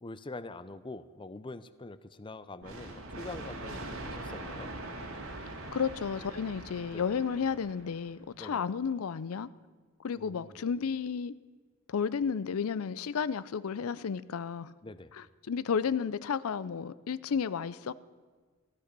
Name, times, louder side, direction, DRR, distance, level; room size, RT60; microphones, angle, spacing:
voice 1, 0.0-4.7 6.9-7.1 8.4-8.6 10.1-10.6 14.8-15.1, left 2 dB, 25° left, 13 dB, 0.5 m, -44 dB
sound 1, 2.6-8.2, right 2 dB, 70° right, 2.2 m, -42 dB
voice 2, 5.7-9.5 10.0-11.3 11.9-14.7 15.1-17.9, left 6 dB, 85° left, 17 dB, 0.5 m, -32 dB
15.0 x 13.0 x 6.8 m, 1.5 s
head